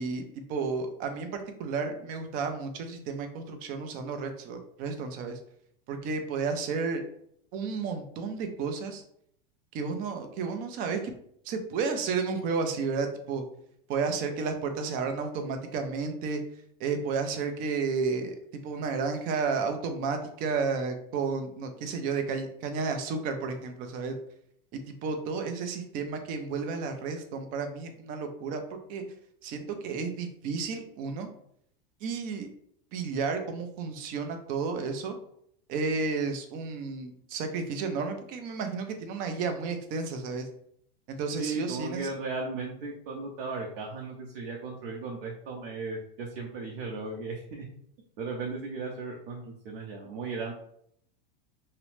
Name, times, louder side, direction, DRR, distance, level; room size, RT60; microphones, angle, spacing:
voice 1, 0.0-5.4 5.9-7.0 7.5-9.0 9.7-11.0 11.5-13.4 13.9-16.4 16.8-18.4 18.6-24.2 24.7-28.6 28.9-29.0 29.4-31.3 32.0-32.5 32.9-35.2 35.7-40.5 41.1-42.1, right 4 dB, 30° right, 6 dB, 0.4 m, -32 dB
voice 2, 41.3-47.6 48.2-50.5, right 3 dB, 65° right, -1 dB, 0.7 m, -36 dB
2.7 x 2.0 x 3.0 m, 0.69 s
supercardioid pair, 140°, 29 cm